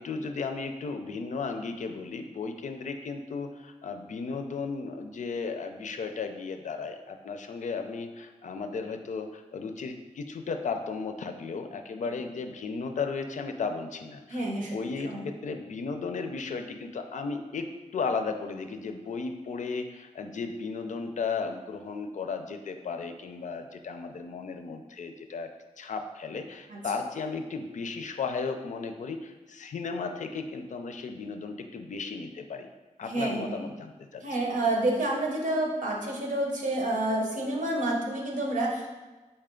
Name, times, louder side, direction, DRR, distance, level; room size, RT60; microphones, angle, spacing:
voice 1, 0.0-32.7 33.0-34.2, left 4 dB, 70° left, 6 dB, 0.4 m, -35 dB
voice 2, 14.3-14.7 15.0-15.3 26.7-26.8 33.0-33.6 34.2-38.9, right 1 dB, 80° right, -1 dB, 0.9 m, -29 dB
4.3 x 3.3 x 3.7 m, 1.2 s
wide cardioid pair, 90°, 13 cm